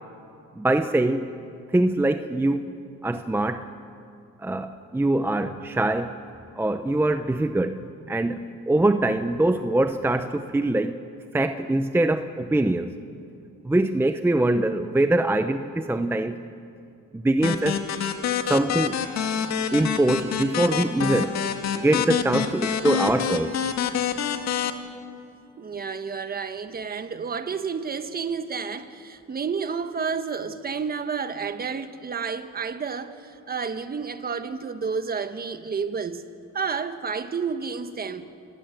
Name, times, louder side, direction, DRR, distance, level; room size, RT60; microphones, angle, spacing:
voice 1, 0.6-1.3 1.7-2.7 3.0-3.7 4.4-6.2 6.6-7.8 8.1-11.0 11.3-12.9 13.6-16.4 17.1-17.8 18.5-19.1 19.7-21.4 21.7-23.6, right 2 dB, 10° right, 0.7 m, -23 dB
sound 1, 17.4-24.7, left 8 dB, 65° left, 2.0 m, -27 dB
voice 2, 25.6-36.2 36.5-38.3, right 5 dB, 30° right, 1.3 m, -30 dB
29.5 x 16.0 x 9.0 m
cardioid pair, 120°, 29 cm